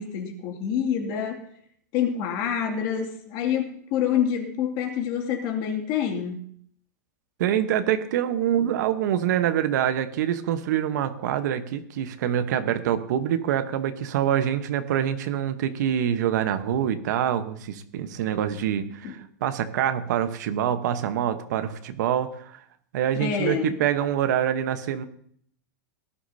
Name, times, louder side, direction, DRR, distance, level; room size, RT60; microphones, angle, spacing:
voice 1, 0.0-1.4 1.9-6.5 19.0-19.2 23.1-23.8, left 8 dB, 45° left, 3 dB, 2.4 m, -27 dB
voice 2, 7.4-22.6 22.9-25.0, right 10 dB, 70° right, 10 dB, 1.1 m, -25 dB
18.5 x 11.5 x 2.8 m, 0.63 s
supercardioid pair, 135°, 10 cm